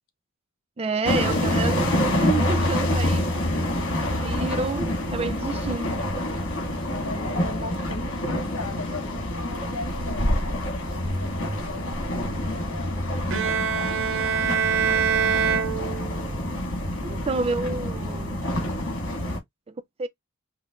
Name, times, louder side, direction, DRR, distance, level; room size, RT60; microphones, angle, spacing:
voice 1, 0.8-3.3 4.1-5.9 17.0-18.5 19.7-20.1, right 3 dB, 25° right, 0.4 m, -29 dB
sound 1, 1.0-19.4, left 1 dB, 60° left, 1.9 m, -27 dB
voice 2, 6.9-13.0 13.4-14.6, left 3 dB, 75° left, 1.2 m, -38 dB
Bowed string instrument, 13.3-16.4, right 7 dB, 65° right, 0.7 m, -24 dB
5.5 x 2.1 x 2.4 m
head